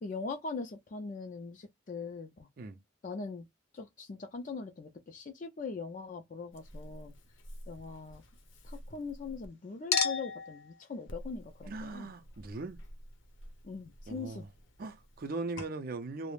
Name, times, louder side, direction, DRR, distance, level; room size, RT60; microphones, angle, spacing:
voice 1, 0.0-2.5 3.0-3.5 3.7-7.1 7.7-8.2 8.6-12.1 13.6-14.5, left 4 dB, 45° left, 0.4 m, -41 dB
Chink clink, 6.5-9.5 9.9-15.3 15.6-15.7, left 5 dB, 85° left, 0.7 m, -40 dB
voice 2, 11.6-12.8 14.1-14.5 14.8-16.3, right 3 dB, 50° right, 0.5 m, -39 dB
2.3 x 2.1 x 3.1 m
head